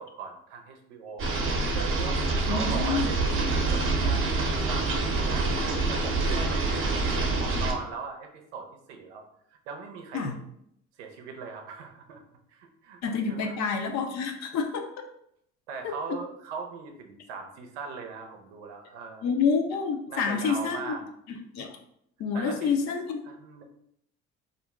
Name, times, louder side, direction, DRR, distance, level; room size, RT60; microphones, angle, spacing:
voice 1, 0.0-1.4 1.7-2.2 2.4-3.4 3.7-5.6 5.9-6.7 7.2-9.3 9.7-10.4 11.0-12.2 12.5-13.6 15.7-19.2 20.1-21.0 22.3-22.7 23.2-23.6, right 5 dB, 85° right, 3 dB, 0.6 m, -39 dB
sound 1, 1.2-7.7, right 3 dB, 35° right, 0.8 m, -26 dB
voice 2, 2.5-3.1 10.1-10.3 13.0-15.1 15.8-16.0 19.2-20.9 21.3-21.7 22.2-23.2, left 5 dB, 50° left, 5 dB, 0.6 m, -28 dB
2.5 x 2.1 x 3.5 m, 0.71 s
hypercardioid pair, 65°, 35 cm